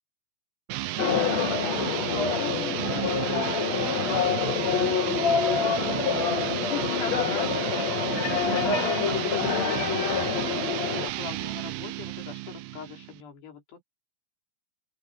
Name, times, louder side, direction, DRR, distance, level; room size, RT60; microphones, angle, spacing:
sound 1, 0.7-13.2, right 17 dB, 75° right, 2.7 m, -32 dB
sound 2, 1.0-11.1, left 6 dB, 45° left, 3.4 m, -27 dB
voice 1, 1.3-13.8, left 9 dB, 75° left, 5.6 m, -40 dB
open air
omnidirectional pair, 4.9 m